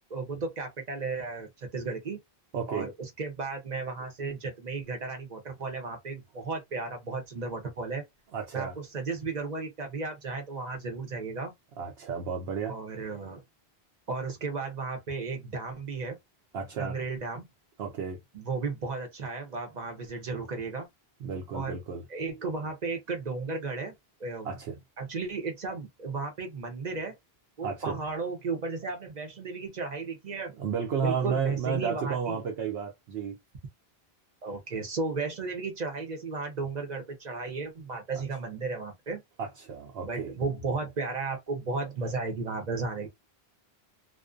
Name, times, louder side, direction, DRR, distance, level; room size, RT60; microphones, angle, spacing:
voice 1, 0.1-2.2 2.7-8.1 8.5-11.5 12.7-13.4 14.1-16.2 16.8-17.5 18.3-20.9 21.5-21.8 22.1-23.9 24.2-24.6 25.0-27.2 27.6-30.5 31.0-32.4 34.4-39.2 40.0-43.1, right 4 dB, 50° right, 0.7 m, -34 dB
voice 2, 2.5-2.9 8.3-8.8 11.8-12.8 16.5-17.0 17.8-18.2 21.2-22.0 24.4-24.7 27.6-28.0 30.6-33.4 38.1-38.2 39.4-40.3, right 6 dB, 80° right, 0.8 m, -32 dB
2.4 x 2.2 x 2.4 m
omnidirectional pair, 1.1 m